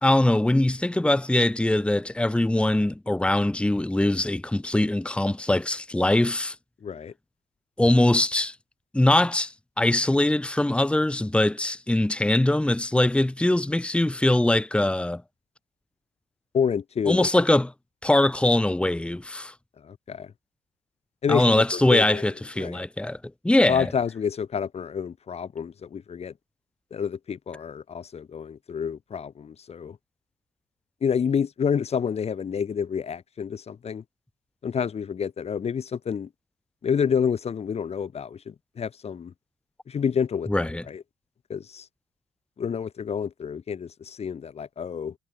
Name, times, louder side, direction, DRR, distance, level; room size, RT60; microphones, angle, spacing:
voice 1, 0.0-6.6 7.8-8.6 8.9-15.2 17.1-17.7 18.0-19.5 21.3-23.2 23.4-23.9 40.5-40.8, left 1 dB, 5° left, 2.0 m, -22 dB
voice 2, 6.8-7.1 16.5-17.3 19.8-20.3 21.2-22.2 22.6-22.9 23.7-26.3 26.9-30.0 31.0-34.0 34.6-36.3 36.8-39.3 39.9-41.0 41.5-41.9 42.6-45.1, left 7 dB, 40° left, 2.4 m, -28 dB
cardioid pair, 110°, 17 cm